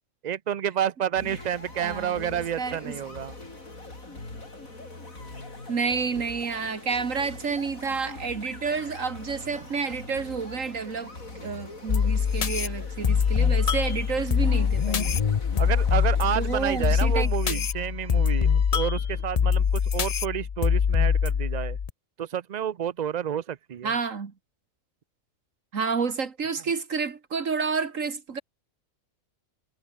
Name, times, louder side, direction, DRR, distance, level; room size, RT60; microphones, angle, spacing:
voice 1, 0.2-3.3 15.6-21.8 22.2-24.0, right 9 dB, 50° right, 0.5 m, -30 dB
sound 1, 1.2-17.2, left 2 dB, 80° left, 5.5 m, -42 dB
voice 2, 1.8-3.0 5.7-11.1 11.4-15.2 16.4-17.6 23.8-24.3 25.7-28.4, right 5 dB, 70° right, 2.1 m, -30 dB
sound 2, 11.9-21.9, left 7 dB, 45° left, 0.5 m, -24 dB
omnidirectional pair, 1.4 m